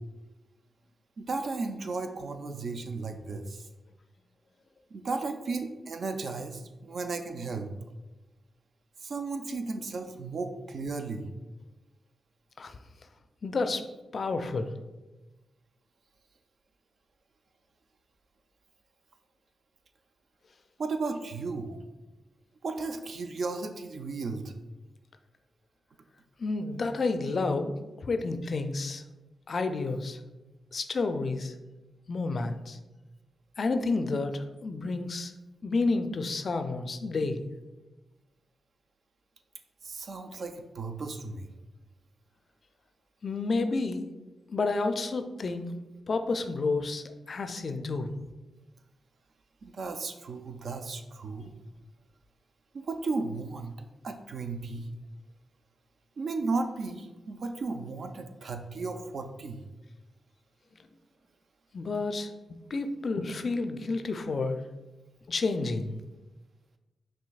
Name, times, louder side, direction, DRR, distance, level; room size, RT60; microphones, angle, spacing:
voice 1, 1.2-3.7 4.9-7.7 9.0-11.3 20.8-21.8 22.6-24.5 39.8-41.5 49.6-51.5 52.7-53.7 54.0-54.9 56.2-59.6, right 3 dB, 65° right, 6 dB, 0.4 m, -34 dB
voice 2, 13.4-13.8 14.1-14.7 26.4-29.0 29.5-30.2 30.7-31.5 32.1-32.8 33.6-35.3 35.6-37.4 43.2-44.1 44.5-45.8 46.1-48.1 61.7-64.6 65.3-65.9, left 3 dB, 60° left, 8 dB, 0.3 m, -30 dB
5.7 x 2.6 x 2.3 m, 1.1 s
supercardioid pair, 40°, 0 cm